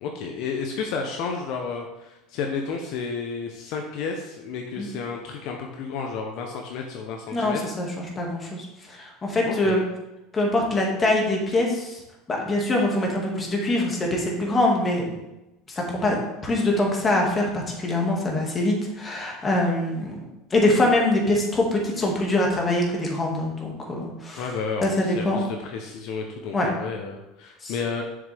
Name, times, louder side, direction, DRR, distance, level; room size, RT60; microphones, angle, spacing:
voice 1, 0.0-7.6 9.4-9.8 24.4-28.0, left 5 dB, 60° left, 2 dB, 0.9 m, -31 dB
voice 2, 7.3-9.8 10.3-12.0 12.3-15.1 15.7-24.4 24.8-25.4 26.5-26.7 27.6-27.7, left 1 dB, 25° left, -1 dB, 2.1 m, -24 dB
7.1 x 6.9 x 3.5 m, 0.96 s
supercardioid pair, 115°, 0 cm